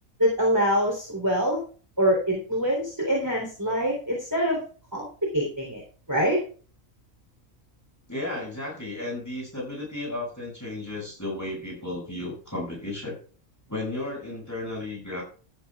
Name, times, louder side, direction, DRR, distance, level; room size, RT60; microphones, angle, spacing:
voice 1, 0.2-1.6 2.0-4.6 4.9-5.0 5.3-5.8 6.1-6.4, equal, 15° right, -1 dB, 3.4 m, -24 dB
voice 2, 8.1-13.2 13.7-15.2, left 2 dB, 10° left, -2 dB, 6.8 m, -33 dB
15.5 x 13.5 x 2.4 m, 0.40 s
omnidirectional pair, 1.5 m